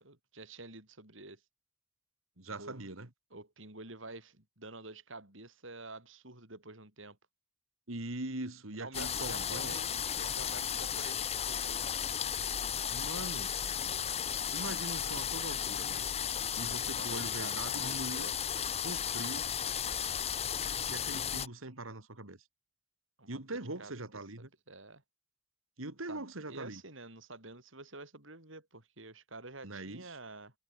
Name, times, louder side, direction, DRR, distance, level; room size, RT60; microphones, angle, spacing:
voice 1, 0.0-1.4 2.5-2.8 3.3-7.2 8.8-11.9 16.6-18.4 23.2-23.4 23.8-23.9 24.7-25.0 26.1-30.5, right 2 dB, 70° right, 6.7 m, -49 dB
voice 2, 2.4-3.1 7.9-9.8 12.9-13.5 14.5-16.1 16.6-18.3 18.8-19.5 20.9-22.4 23.3-24.5 25.8-26.8 29.6-30.2, right 2 dB, 85° right, 2.9 m, -42 dB
sound 1, 8.9-21.5, left 8 dB, 30° left, 0.8 m, -34 dB
head